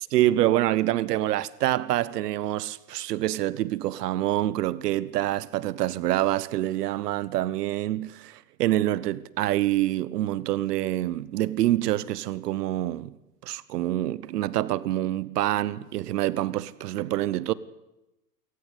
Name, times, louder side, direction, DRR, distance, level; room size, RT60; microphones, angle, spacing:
voice 1, 0.0-13.2 13.4-17.5, right 14 dB, 70° right, 1.0 m, -26 dB
27.5 x 14.5 x 8.3 m
hypercardioid pair, 105°, 49 cm